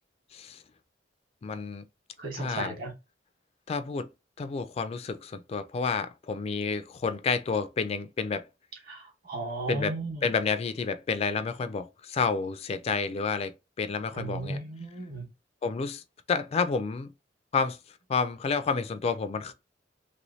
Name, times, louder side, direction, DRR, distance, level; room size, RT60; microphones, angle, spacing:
voice 1, 0.3-0.6 1.4-1.8 2.3-2.7 3.7-4.1 4.4-8.5 9.7-14.6 15.6-16.0 16.3-17.1 17.5-17.8 18.1-19.5, left 5 dB, 35° left, 0.3 m, -30 dB
voice 2, 2.2-2.9 8.9-10.2 14.1-15.2, right 2 dB, 55° right, 1.5 m, -35 dB
3.1 x 3.0 x 2.6 m
head